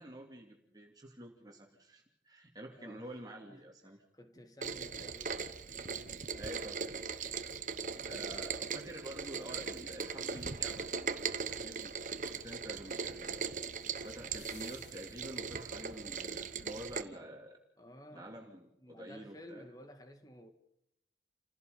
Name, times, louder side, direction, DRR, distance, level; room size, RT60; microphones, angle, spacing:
voice 1, 0.0-4.0 6.1-6.8 8.0-12.0 12.4-13.6 14.0-17.6 18.1-19.7, right 1 dB, 20° right, 2.8 m, -48 dB
voice 2, 2.8-3.1 3.4-3.6 4.1-5.4 7.9-8.5 17.8-18.5 18.8-20.5, equal, 20° left, 1.9 m, -54 dB
Rain, 4.6-17.0, right 5 dB, 45° right, 1.1 m, -39 dB
sound 1, 14.1-15.9 18.1-18.2, left 9 dB, 80° left, 2.0 m, -60 dB
29.5 x 16.5 x 5.3 m
head